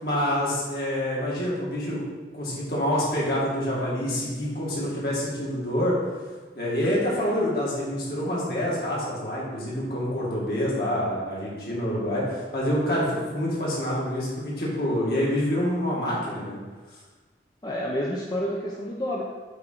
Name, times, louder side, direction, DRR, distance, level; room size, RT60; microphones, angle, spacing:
voice 1, 0.0-2.0 2.3-6.0 6.5-16.6, equal, 60° left, -6 dB, 2.1 m, -27 dB
voice 2, 17.6-19.2, equal, 25° left, -4 dB, 0.6 m, -29 dB
7.6 x 3.7 x 4.5 m, 1.4 s
head